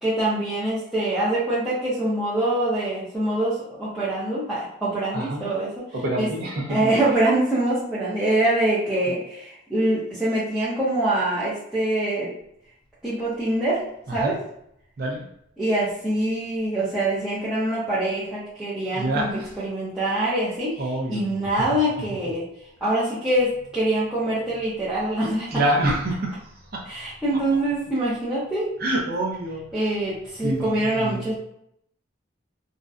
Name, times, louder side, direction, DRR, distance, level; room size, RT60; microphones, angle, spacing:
voice 1, 0.0-5.8 6.2-6.3 6.7-12.3 13.0-13.8 14.1-14.4 15.6-22.4 22.8-25.6 26.8-28.7 29.7-31.4, right 1 dB, 5° right, -12 dB, 0.6 m, -24 dB
voice 2, 5.1-5.5 5.9-6.9 14.2-14.3 15.0-15.2 18.9-19.4 20.8-21.2 25.5-26.1 26.7-26.8 28.8-29.6 30.4-30.7 31.0-31.2, right 1 dB, 50° right, 0 dB, 0.4 m, -26 dB
2.5 x 2.1 x 2.4 m, 0.74 s
head